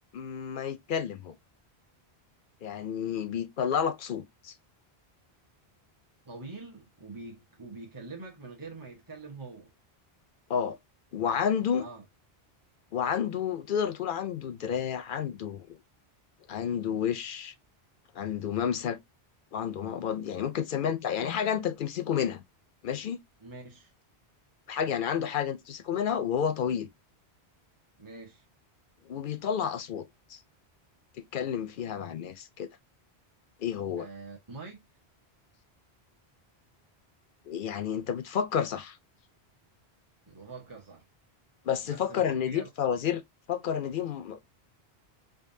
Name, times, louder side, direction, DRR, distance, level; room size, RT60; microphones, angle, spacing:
voice 1, 0.1-1.4 2.6-4.5 10.5-10.8 11.1-11.9 12.9-15.8 16.5-17.5 18.1-19.0 19.5-22.4 22.8-23.2 24.7-26.9 29.1-30.4 31.3-32.7 33.6-34.1 37.5-39.0 41.7-43.2 43.5-44.4, left 8 dB, 60° left, 0.7 m, -30 dB
voice 2, 6.2-9.7 11.8-12.0 23.4-23.9 28.0-28.4 34.0-34.8 40.3-41.0 41.8-42.7, right 3 dB, 20° right, 1.0 m, -44 dB
5.1 x 2.5 x 2.6 m
omnidirectional pair, 1.1 m